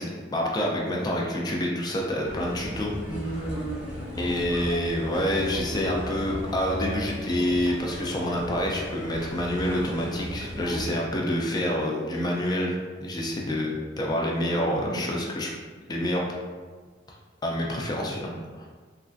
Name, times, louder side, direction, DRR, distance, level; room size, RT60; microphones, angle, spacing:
voice 1, 0.0-2.9 4.2-15.5 15.9-16.2 17.4-18.7, left 1 dB, 25° left, -2 dB, 0.3 m, -27 dB
sound 1, 2.2-10.9, equal, 5° right, 0.7 m, -37 dB
voice 2, 3.1-4.6 14.5-15.0, right 2 dB, 85° left, -3 dB, 0.6 m, -35 dB
3.1 x 2.3 x 2.5 m, 1.5 s
head